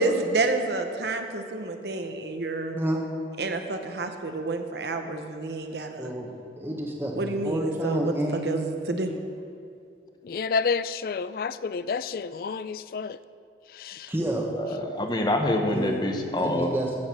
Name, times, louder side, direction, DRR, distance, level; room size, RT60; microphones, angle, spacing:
voice 1, 0.0-2.8 3.4-6.1 7.2-9.1, right 2 dB, 70° right, 6 dB, 0.9 m, -29 dB
voice 2, 6.0-8.5 14.1-14.5 15.7-16.0 16.4-17.0, right 1 dB, 15° right, -1 dB, 1.1 m, -29 dB
voice 3, 10.2-13.2 13.8-14.1, left 5 dB, 55° left, 15 dB, 0.3 m, -29 dB
voice 4, 14.6-16.7, left 1 dB, 25° left, 4 dB, 0.9 m, -26 dB
15.0 x 6.4 x 6.1 m, 2.4 s
head